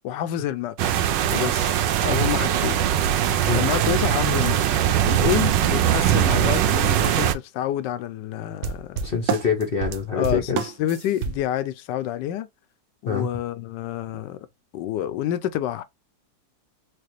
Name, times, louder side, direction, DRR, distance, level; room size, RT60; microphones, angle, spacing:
voice 1, 0.0-2.8 3.5-4.8 5.1-9.0 10.1-12.5 13.0-14.5 14.7-15.8, left 11 dB, 80° left, 1.2 m, -28 dB
sound 1, 0.8-7.3, right 10 dB, 90° right, 1.3 m, -21 dB
sound 2, 8.6-11.4, right 7 dB, 65° right, 1.0 m, -28 dB
voice 2, 9.0-10.6 13.1-13.3, left 5 dB, 50° left, 0.7 m, -25 dB
4.8 x 2.2 x 3.0 m
omnidirectional pair, 1.9 m